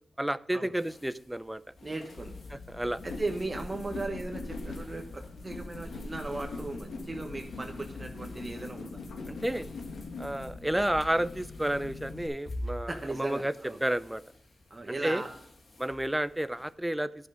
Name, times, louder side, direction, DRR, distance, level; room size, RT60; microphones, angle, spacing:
voice 1, 0.2-1.6 2.5-3.0 9.3-9.7 10.2-13.5 13.8-14.2 14.9-15.2 15.8-17.1, right 1 dB, 10° right, 15 dB, 0.5 m, -31 dB
sound 1, 0.7-16.7, left 1 dB, 60° left, 2.1 m, -49 dB
voice 2, 1.8-2.4 3.0-9.0 12.9-13.8 14.7-15.3, right 2 dB, 35° right, 3 dB, 1.3 m, -37 dB
sound 2, 2.1-12.3, left 3 dB, 90° left, 1.4 m, -41 dB
11.0 x 6.5 x 5.0 m, 0.74 s
cardioid pair, 70°, 0 cm